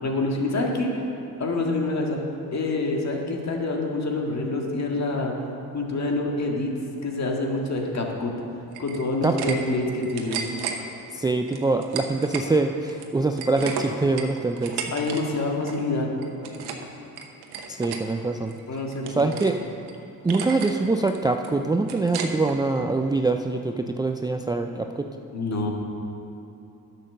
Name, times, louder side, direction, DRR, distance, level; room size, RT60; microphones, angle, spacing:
voice 1, 0.0-1.0 1.4-2.2 2.5-5.3 5.7-6.7 7.0-8.3 8.8-10.4 14.9-16.1 18.7-19.4 25.3-25.7, left 2 dB, 45° left, 0 dB, 1.9 m, -26 dB
sound 1, 8.7-9.6 9.9-10.8 11.5-12.5 12.8-15.2 15.5-15.8 16.2-16.9 17.2-18.0 18.5-19.6 19.9-20.0 20.3-20.8 21.1-22.6, right 6 dB, 85° right, 1.1 m, -34 dB
voice 2, 9.2-9.6 11.1-14.9 17.7-18.5 19.2-19.6 20.2-25.1, right 3 dB, 10° right, 4 dB, 0.4 m, -24 dB
10.5 x 6.6 x 6.6 m, 2.9 s
cardioid pair, 80°, 37 cm